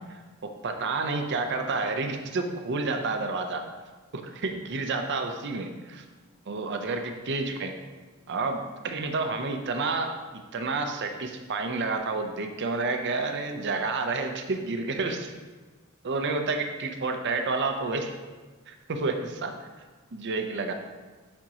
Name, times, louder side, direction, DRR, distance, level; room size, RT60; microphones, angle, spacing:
voice 1, 0.1-3.7 4.1-6.0 6.5-7.7 8.3-10.2 10.5-15.3 16.0-18.1 18.7-19.7 20.1-20.7, right 3 dB, 55° right, 6 dB, 0.6 m, -30 dB
8.6 x 4.4 x 2.9 m, 1.3 s
head